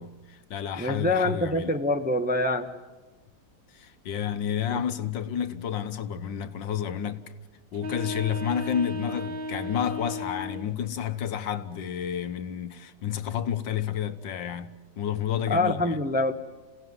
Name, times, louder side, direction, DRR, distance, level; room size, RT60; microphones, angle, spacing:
voice 1, 0.0-1.8 3.7-7.3 7.7-16.0, left 9 dB, 75° left, 1.8 m, -30 dB
voice 2, 0.8-2.7 4.7-4.8 15.5-16.3, left 2 dB, 5° right, 0.8 m, -25 dB
sound 1, 7.7-10.7, left 1 dB, 80° right, 2.7 m, -35 dB
27.5 x 17.0 x 9.6 m
omnidirectional pair, 2.1 m